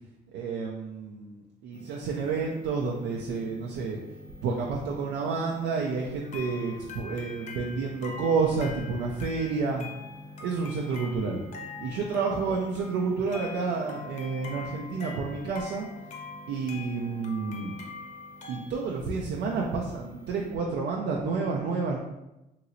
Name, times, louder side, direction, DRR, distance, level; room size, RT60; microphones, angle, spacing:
voice 1, 0.3-4.0 4.4-9.9 10.4-11.4 11.8-15.9 16.5-17.8 18.5-22.0, right 4 dB, 75° right, -1 dB, 0.4 m, -30 dB
sound 1, 1.7-20.5, left 1 dB, 80° left, 0.8 m, -49 dB
sound 2, 6.2-18.6, left 4 dB, 45° left, 0.6 m, -44 dB
3.0 x 2.8 x 2.6 m, 0.94 s
cardioid pair, 110°, 17 cm